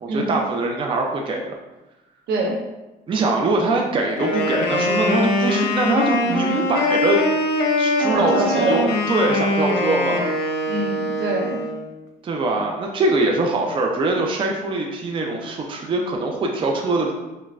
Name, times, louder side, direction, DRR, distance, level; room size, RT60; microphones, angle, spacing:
voice 1, 0.0-1.5 3.1-7.2 7.8-10.3 12.2-17.1, right 2 dB, 30° right, 1 dB, 0.5 m, -22 dB
voice 2, 2.3-2.6 8.1-8.8 10.7-11.6, right 2 dB, 80° right, -1 dB, 0.9 m, -24 dB
Wind instrument woodwind instrument, 4.1-11.8, left 2 dB, 75° left, 0.6 m, -22 dB
5.1 x 2.2 x 2.4 m, 1.1 s
cardioid pair, 110°, 17 cm